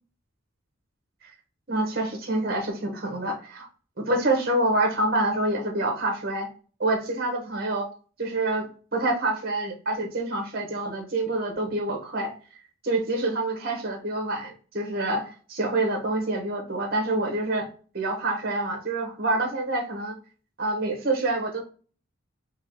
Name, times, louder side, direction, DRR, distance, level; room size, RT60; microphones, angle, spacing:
voice 1, 1.7-3.7 4.0-6.5 6.8-7.9 8.2-12.3 12.8-17.7 17.9-20.2 20.6-21.6, right 2 dB, 45° right, 3 dB, 1.0 m, -27 dB
3.6 x 2.9 x 3.5 m, 0.40 s
head